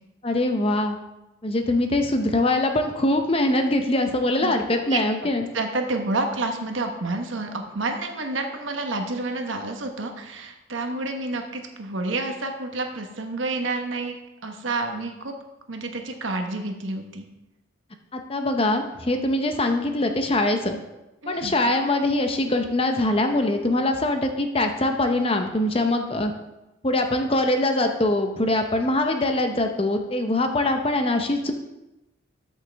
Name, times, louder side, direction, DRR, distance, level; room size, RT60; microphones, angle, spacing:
voice 1, 0.2-1.0 1.4-5.5 18.1-20.8 21.3-26.3 26.8-31.5, left 1 dB, 25° left, 6 dB, 0.7 m, -23 dB
voice 2, 5.5-14.2 14.4-15.3 15.7-17.3 21.2-21.5, right 2 dB, 70° right, 4 dB, 1.1 m, -29 dB
13.5 x 6.4 x 3.4 m, 0.97 s
head